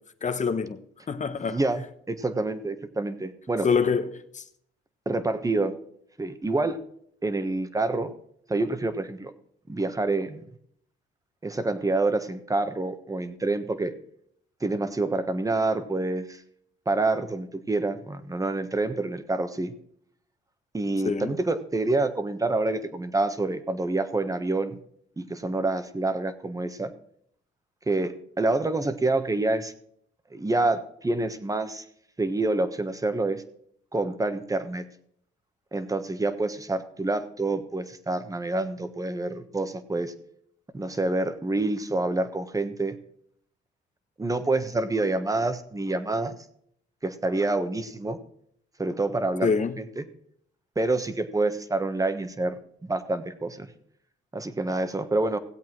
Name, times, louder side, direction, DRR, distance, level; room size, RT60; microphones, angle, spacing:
voice 1, 0.2-1.6 3.6-4.4 21.0-21.3 49.4-49.8, left 5 dB, 40° left, 1.1 m, -26 dB
voice 2, 1.5-3.7 5.0-5.7 6.2-6.8 7.2-8.1 8.5-9.3 9.7-10.4 11.4-13.9 14.6-16.4 16.9-19.7 20.7-24.8 25.2-26.9 27.9-29.7 30.3-31.8 32.2-33.4 33.9-34.8 35.7-40.1 40.7-42.9 44.2-46.3 47.0-48.2 48.8-49.5 49.8-50.0 50.7-52.6 52.8-53.7 54.3-55.4, right 2 dB, 15° right, 1.3 m, -27 dB
17.5 x 8.1 x 4.6 m
cardioid pair, 90°, 20 cm